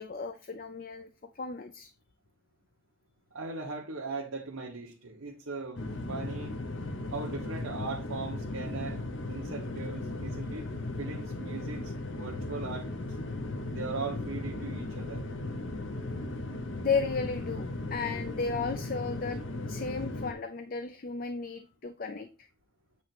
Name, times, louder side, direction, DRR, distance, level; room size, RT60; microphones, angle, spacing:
voice 1, 0.0-1.9 16.8-19.4 19.7-22.5, left 4 dB, 40° left, 8 dB, 0.5 m, -34 dB
voice 2, 3.3-6.5 7.1-9.0 9.3-10.7 11.0-13.2 13.7-15.3, right 3 dB, 90° right, -2 dB, 1.3 m, -39 dB
sound 1, 5.8-20.3, left 2 dB, 60° left, 0.9 m, -37 dB
8.6 x 3.2 x 6.0 m, 0.34 s
head